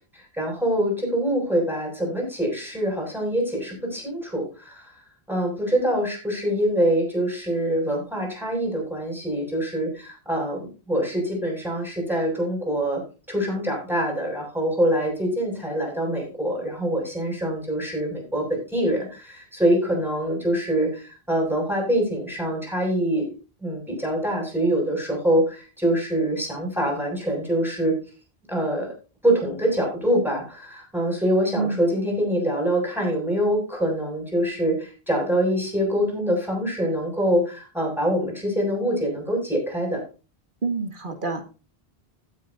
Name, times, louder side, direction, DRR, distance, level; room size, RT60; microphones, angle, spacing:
voice 1, 0.3-4.9 5.3-13.0 13.3-23.3 23.6-27.9 28.5-28.9 29.2-40.0, right 1 dB, ahead, 0 dB, 7.0 m, -24 dB
voice 2, 31.6-31.9 40.6-41.4, right 4 dB, 55° right, 6 dB, 2.0 m, -27 dB
16.5 x 9.1 x 2.7 m, 0.33 s
omnidirectional pair, 1.0 m